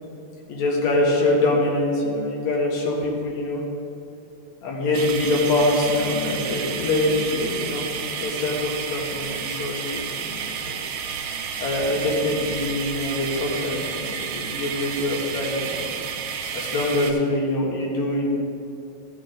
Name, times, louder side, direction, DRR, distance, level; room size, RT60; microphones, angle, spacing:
voice 1, 0.5-3.6 4.6-7.9 8.2-10.8 11.6-15.9 16.5-18.3, left 2 dB, 70° left, -3 dB, 2.8 m, -24 dB
sound 1, 4.9-17.1, right 7 dB, 85° right, 2.1 m, -31 dB
14.5 x 6.8 x 3.9 m, 2.4 s
omnidirectional pair, 3.4 m